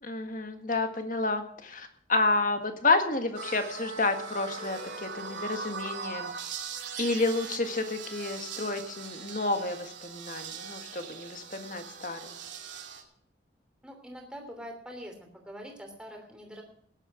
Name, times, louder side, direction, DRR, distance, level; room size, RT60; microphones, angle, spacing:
voice 1, 0.0-6.3 7.0-12.4, left 3 dB, 45° left, 7 dB, 1.7 m, -30 dB
sound 1, 3.3-13.0, right 5 dB, 75° right, 2.6 m, -40 dB
voice 2, 13.8-16.6, equal, 5° right, 2 dB, 3.0 m, -44 dB
15.5 x 11.0 x 4.9 m, 0.64 s
head